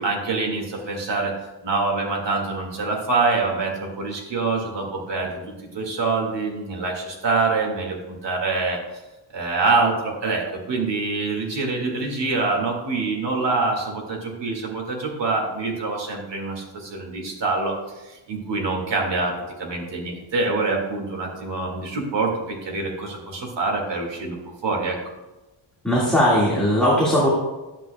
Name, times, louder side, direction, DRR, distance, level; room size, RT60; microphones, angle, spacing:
voice 1, 0.0-1.4 1.6-8.8 9.3-17.7 18.1-25.0, right 3 dB, 65° right, 0 dB, 2.1 m, -25 dB
voice 2, 25.8-27.3, equal, ahead, -7 dB, 1.8 m, -18 dB
11.0 x 8.2 x 2.2 m, 1.1 s
wide cardioid pair, 145°, 46 cm